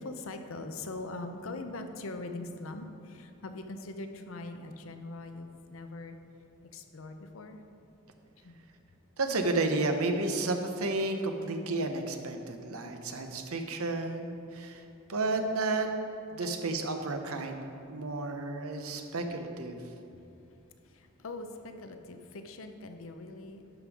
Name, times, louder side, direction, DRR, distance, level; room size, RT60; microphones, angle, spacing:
voice 1, 0.0-6.2 6.7-7.6 8.4-8.6 9.2-9.4 16.4-16.5 20.5-20.6 20.8-23.7, left 2 dB, 75° left, 7 dB, 0.7 m, -42 dB
voice 2, 9.2-14.8 15.1-15.9 16.3-17.6 17.9-19.8, right 2 dB, 90° right, 5 dB, 0.9 m, -32 dB
12.0 x 5.3 x 4.8 m, 2.7 s
head